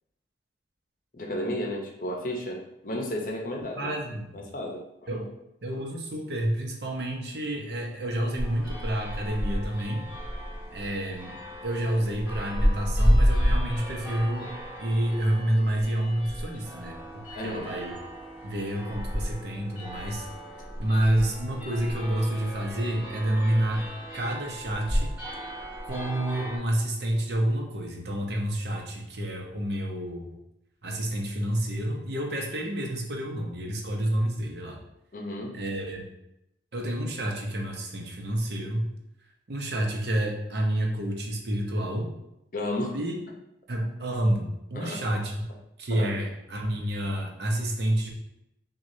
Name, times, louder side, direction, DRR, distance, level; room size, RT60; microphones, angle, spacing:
voice 1, 1.1-4.0 4.3-5.2 17.3-17.7 35.1-35.6 42.5-43.0 44.7-45.0 45.9-46.1, left 1 dB, 50° left, 0 dB, 0.7 m, -33 dB
voice 2, 3.8-4.4 5.1-5.3 5.6-10.1 10.7-11.3 11.6-14.5 14.8-17.9 18.4-20.3 20.8-23.8 24.1-25.2 25.8-30.3 30.8-34.8 35.5-36.1 36.7-38.9 39.5-42.1 42.9-43.1 43.7-45.3 45.8-48.1, right 1 dB, 65° right, 1 dB, 0.7 m, -29 dB
sound 1, 8.4-26.6, equal, 10° right, 1.4 m, -31 dB
6.1 x 2.3 x 2.7 m, 0.84 s
head